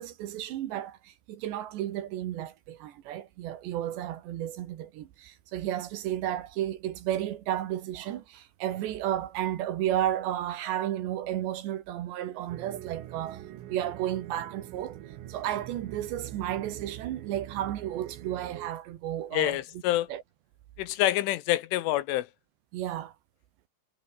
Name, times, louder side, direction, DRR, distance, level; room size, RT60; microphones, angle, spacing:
voice 1, 0.0-15.0 15.3-19.6 20.1-20.2 22.7-23.1, right 12 dB, 70° right, 3.3 m, -33 dB
sound 1, 12.5-18.7, right 13 dB, 85° right, 4.6 m, -44 dB
voice 2, 19.3-20.1 20.8-22.3, left 15 dB, 80° left, 3.5 m, -27 dB
omnidirectional pair, 5.8 m